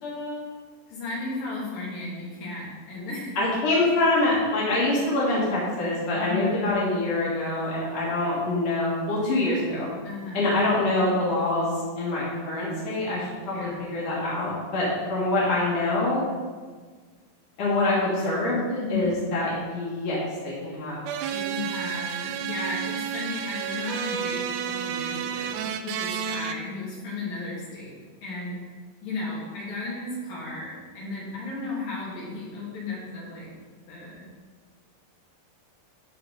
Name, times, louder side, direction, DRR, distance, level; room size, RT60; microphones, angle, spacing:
voice 1, 0.0-0.5 3.4-9.9 10.3-16.2 17.6-20.2 20.4-21.0, left 2 dB, 50° left, -7 dB, 3.8 m, -25 dB
voice 2, 0.9-3.3 6.2-6.7 10.0-10.6 13.5-13.7 18.8-19.4 21.3-27.9 28.2-28.7 29.0-33.5 33.9-34.3, left 3 dB, 80° left, -6 dB, 4.7 m, -34 dB
sound 1, 21.1-26.5, right 8 dB, 80° right, 2.0 m, -31 dB
14.0 x 5.0 x 5.2 m, 1.5 s
omnidirectional pair, 3.9 m